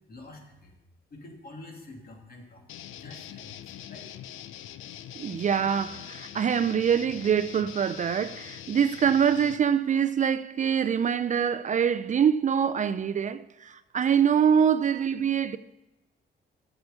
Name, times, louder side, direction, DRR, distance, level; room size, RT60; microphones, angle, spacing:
voice 1, 0.1-0.8 1.1-2.6 3.0-4.1, left 2 dB, 50° left, 2.7 m, -47 dB
sound 1, 2.7-9.6, left 11 dB, 85° left, 0.6 m, -43 dB
voice 2, 5.1-15.6, right 8 dB, 40° right, 0.4 m, -24 dB
8.7 x 6.8 x 8.1 m
cardioid pair, 90°, 20 cm